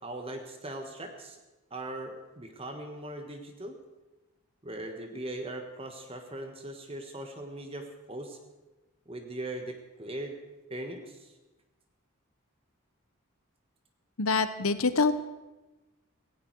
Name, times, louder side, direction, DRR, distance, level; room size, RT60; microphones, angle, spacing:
voice 1, 0.0-1.4 1.7-3.8 4.6-8.4 9.1-10.4 10.7-11.3, right 1 dB, 25° right, 5 dB, 1.3 m, -40 dB
voice 2, 14.2-15.1, left 4 dB, 85° left, 12 dB, 1.1 m, -25 dB
17.5 x 16.5 x 4.7 m, 1.1 s
head